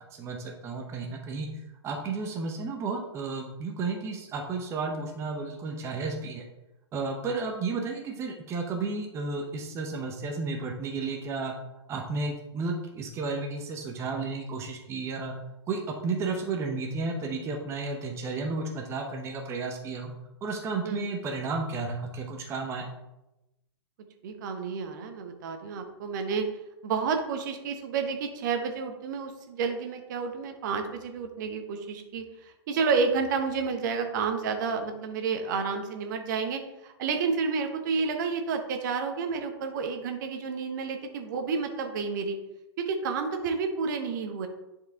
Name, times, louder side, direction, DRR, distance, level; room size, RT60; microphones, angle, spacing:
voice 1, 0.1-1.5 1.8-6.4 6.9-11.5 11.9-15.3 15.7-20.1 20.4-22.9, right 3 dB, 20° right, 2 dB, 1.0 m, -32 dB
voice 2, 24.2-26.5 26.8-42.3 42.8-44.5, right 5 dB, 45° right, 5 dB, 1.1 m, -30 dB
10.5 x 4.8 x 3.6 m, 0.93 s
figure-of-eight pair, 110°, 15 cm